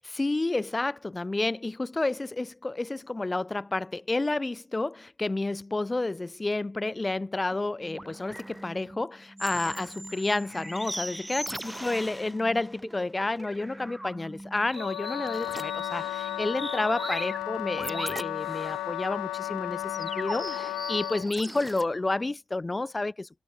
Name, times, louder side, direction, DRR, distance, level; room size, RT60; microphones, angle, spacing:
voice 1, 0.1-23.3, left 2 dB, 25° left, 1.1 m, -30 dB
sound 1, 7.5-21.8, right 1 dB, 10° right, 2.0 m, -40 dB
Wind instrument woodwind instrument, 14.8-21.3, left 16 dB, 80° left, 1.0 m, -34 dB
hypercardioid pair, 40°, 0 cm